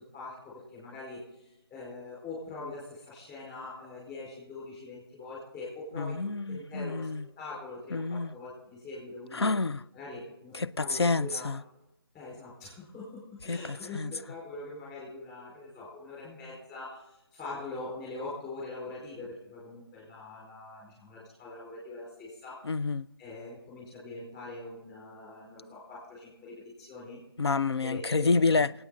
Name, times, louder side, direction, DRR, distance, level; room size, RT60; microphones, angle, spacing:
voice 1, 0.0-7.1 7.4-9.5 9.9-11.5 12.1-22.6 23.2-27.2 27.8-28.6, left 2 dB, 15° left, 4.6 m, -43 dB
voice 2, 5.9-7.3 7.9-8.3 9.3-9.8 10.5-11.6 13.5-14.1 22.6-23.1 27.4-28.7, left 3 dB, 85° left, 0.5 m, -28 dB
25.0 x 8.8 x 3.9 m
figure-of-eight pair, 160°, 13 cm